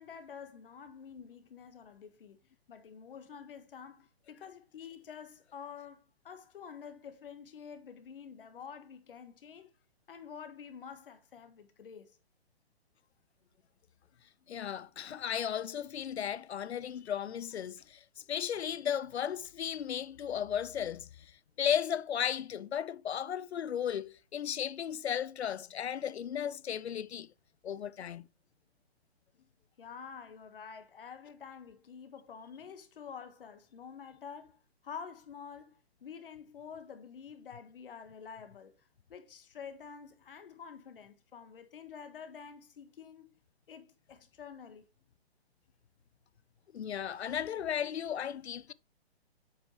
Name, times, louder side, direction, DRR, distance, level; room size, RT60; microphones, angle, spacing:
voice 1, 0.0-2.4 2.7-9.7 10.1-12.2 29.8-38.8 39.1-43.3 43.7-44.8, left 7 dB, 60° left, 1.4 m, -48 dB
voice 2, 14.5-27.3 27.6-28.3 46.7-48.7, left 9 dB, 85° left, 0.5 m, -35 dB
8.2 x 5.5 x 3.1 m
figure-of-eight pair, 130°, 32 cm